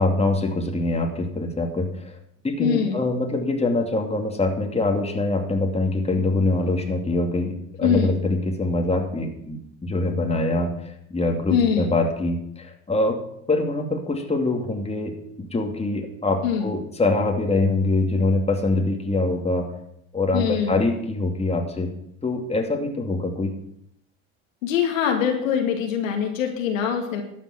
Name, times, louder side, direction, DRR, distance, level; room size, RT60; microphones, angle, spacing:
voice 1, 0.0-2.2 2.4-13.2 13.5-19.7 20.1-21.9 22.2-23.5, left 2 dB, 15° left, 3 dB, 2.6 m, -24 dB
voice 2, 2.6-3.1 7.8-8.2 11.5-12.0 16.4-16.7 20.3-20.8 24.6-27.2, left 7 dB, 85° left, 3 dB, 2.3 m, -23 dB
12.5 x 7.4 x 7.4 m, 0.73 s
hypercardioid pair, 80°, 39 cm